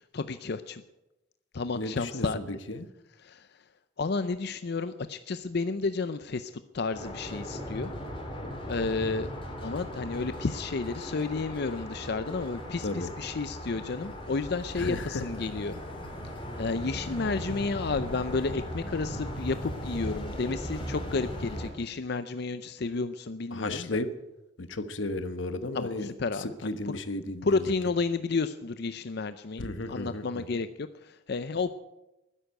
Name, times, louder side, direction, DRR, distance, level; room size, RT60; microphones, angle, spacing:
voice 1, 0.1-0.8 1.5-2.4 3.2-3.5 4.0-7.9 8.6-9.3 9.6-15.8 16.6-23.9 25.7-27.0 27.4-30.7 31.0-31.7, left 4 dB, 60° left, 12 dB, 0.6 m, -31 dB
voice 2, 1.7-2.9 12.8-13.1 14.8-15.2 23.5-24.1 24.6-27.6 29.6-30.6, left 2 dB, 80° left, 11 dB, 1.2 m, -34 dB
sound 1, 6.9-21.7, equal, 30° left, 3.6 m, -38 dB
13.0 x 10.0 x 9.1 m, 0.97 s
head